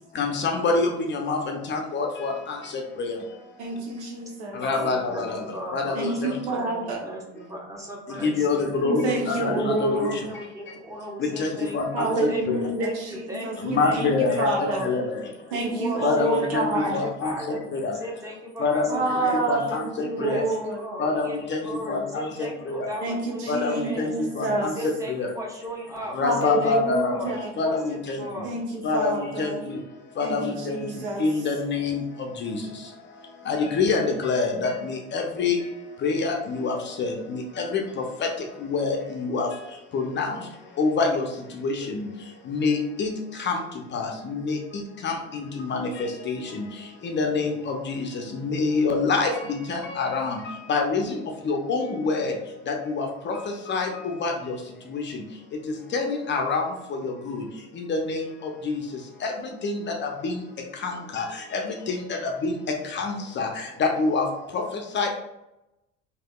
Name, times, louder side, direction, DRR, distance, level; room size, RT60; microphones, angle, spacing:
voice 1, 0.1-3.6 4.5-6.4 8.1-10.8 11.2-12.6 13.6-15.5 16.0-17.9 18.6-20.4 21.0-22.9 23.5-25.3 26.1-28.5 28.8-65.1, left 4 dB, 35° left, 2 dB, 0.5 m, -27 dB
voice 2, 3.6-4.6 5.9-7.0 8.1-8.2 8.8-10.2 11.9-14.9 15.5-17.0 17.5-17.6 18.9-20.9 23.0-24.7 26.2-27.5 28.4-29.6 30.2-31.3, right 2 dB, 75° right, -1 dB, 0.8 m, -28 dB
voice 3, 4.6-8.5 9.1-14.0 14.3-14.9 15.5-19.4 19.9-24.1 24.6-28.5, equal, 10° right, -2 dB, 0.9 m, -37 dB
3.3 x 2.4 x 2.2 m, 0.91 s
hypercardioid pair, 60°, 33 cm